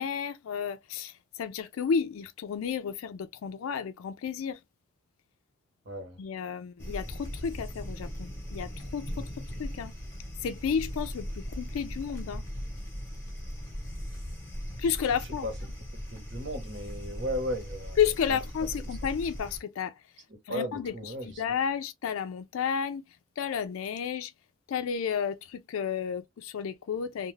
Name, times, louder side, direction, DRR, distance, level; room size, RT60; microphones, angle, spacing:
voice 1, 0.0-4.6 6.2-9.9 10.4-12.4 14.8-15.5 18.0-20.0 20.5-23.0 23.4-24.3 24.7-27.3, left 7 dB, 85° left, 0.4 m, -32 dB
voice 2, 5.8-6.2 15.4-15.5 16.1-18.0 20.5-21.4, equal, 60° right, 1.1 m, -35 dB
sound 1, 6.8-19.6, equal, 10° left, 0.9 m, -39 dB
2.4 x 2.3 x 3.1 m
head